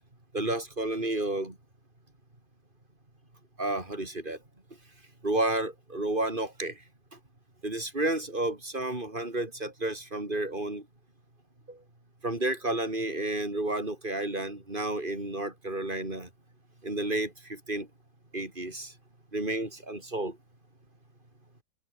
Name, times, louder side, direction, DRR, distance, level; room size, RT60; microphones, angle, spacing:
voice 1, 0.3-1.5 3.6-4.4 5.2-6.7 7.6-10.8 11.7-11.8 12.2-16.3 16.8-17.9 18.3-18.9 19.3-20.4, right 2 dB, 30° right, 4.9 m, -31 dB
open air
omnidirectional pair, 1.7 m